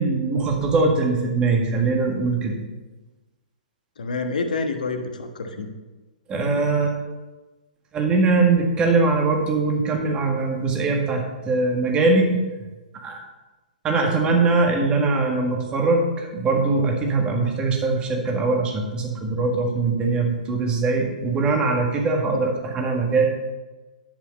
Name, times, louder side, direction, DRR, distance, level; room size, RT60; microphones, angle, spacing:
voice 1, 0.0-2.5 6.3-7.0 7.9-12.4 13.0-13.2 13.8-23.2, right 3 dB, 20° right, 1 dB, 1.8 m, -21 dB
voice 2, 4.0-5.7, left 3 dB, 65° left, 5 dB, 1.2 m, -27 dB
10.5 x 5.6 x 5.4 m, 1.2 s
figure-of-eight pair, 120°, 5 cm